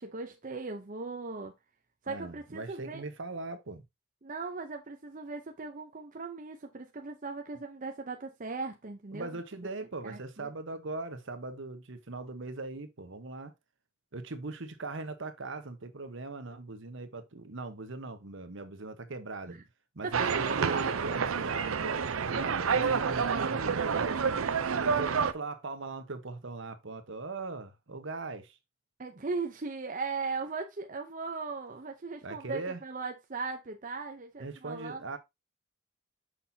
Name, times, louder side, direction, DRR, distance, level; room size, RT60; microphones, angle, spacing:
voice 1, 0.0-1.5 2.0-3.0 4.2-9.4 10.0-10.5 19.5-19.6 20.0-20.8 29.0-35.0, right 4 dB, 40° right, 0.7 m, -38 dB
voice 2, 2.1-3.8 9.1-13.5 14.1-19.6 19.9-21.7 22.3-24.2 24.7-28.6 32.2-32.8 34.4-35.2, right 3 dB, 65° right, 1.0 m, -40 dB
sound 1, 20.1-25.3, right 6 dB, 85° right, 0.6 m, -29 dB
6.5 x 5.7 x 2.7 m
head